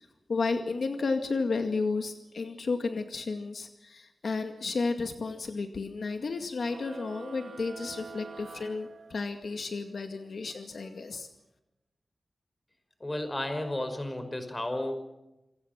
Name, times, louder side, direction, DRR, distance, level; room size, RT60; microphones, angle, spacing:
voice 1, 0.0-11.3, left 4 dB, 70° left, 6 dB, 2.2 m, -32 dB
sound 1, 6.6-9.6, right 5 dB, 85° right, 2.0 m, -46 dB
voice 2, 13.0-14.9, left 1 dB, 20° left, 8 dB, 5.5 m, -33 dB
28.0 x 24.5 x 6.0 m, 0.95 s
wide cardioid pair, 120°, 0 cm